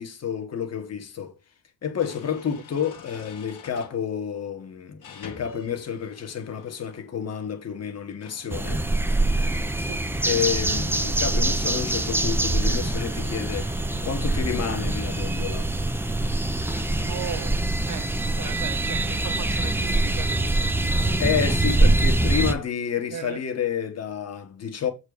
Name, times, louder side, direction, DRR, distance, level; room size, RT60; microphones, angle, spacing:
voice 1, 0.0-1.4 1.8-8.9 10.2-13.7 14.0-15.7 21.2-24.9, left 7 dB, 45° left, 1.7 m, -29 dB
sound 1, 1.1-1.2 2.0-4.0 5.0-7.2 8.1-11.1 12.0-15.6 16.7-17.1, left 5 dB, 60° left, 2.0 m, -48 dB
sound 2, 8.5-22.5, right 2 dB, 5° right, 0.6 m, -24 dB
voice 2, 17.0-17.5 17.9-21.2 23.1-23.4, right 9 dB, 55° right, 0.8 m, -37 dB
7.5 x 4.7 x 5.0 m
cardioid pair, 135°, 36 cm